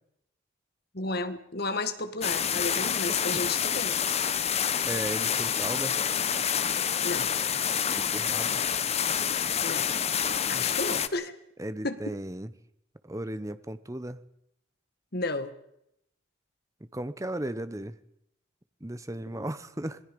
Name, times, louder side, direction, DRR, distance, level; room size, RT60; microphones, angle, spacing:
voice 1, 0.9-3.9 7.0-7.3 9.6-9.9 10.5-11.3 11.8-12.0 15.1-15.5 19.3-19.4, left 2 dB, 50° left, 10 dB, 1.6 m, -32 dB
sound 1, 2.2-11.1, left 8 dB, 30° left, 0.8 m, -28 dB
voice 2, 4.9-6.0 7.9-8.6 11.6-12.5 13.0-14.2 16.9-18.0 18.8-20.0, right 1 dB, 15° right, 13 dB, 0.8 m, -35 dB
26.5 x 19.0 x 5.3 m, 0.77 s
head